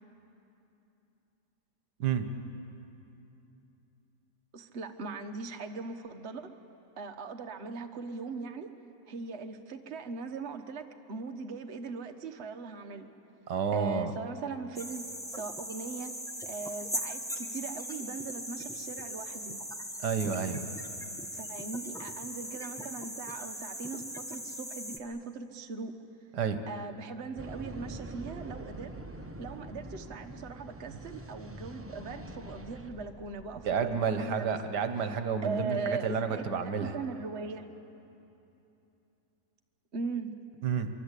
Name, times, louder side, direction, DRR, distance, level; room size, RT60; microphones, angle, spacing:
voice 1, 4.5-6.5 7.0-8.7 9.1-13.1 13.7-16.2 16.5-19.6 21.3-26.0 26.7-28.9 29.4-34.6 35.0-36.5 36.8-37.7 39.9-40.3, right 4 dB, 45° right, 5 dB, 1.3 m, -39 dB
voice 2, 13.5-14.1 20.0-20.7 26.3-26.6 33.6-36.9 40.6-40.9, right 6 dB, 80° right, 8 dB, 1.7 m, -30 dB
sound 1, 14.7-25.0, equal, ahead, 1.0 m, -39 dB
sound 2, 27.4-34.1, right 1 dB, 15° right, 0.5 m, -45 dB
24.0 x 24.0 x 8.3 m, 2.9 s
omnidirectional pair, 1.8 m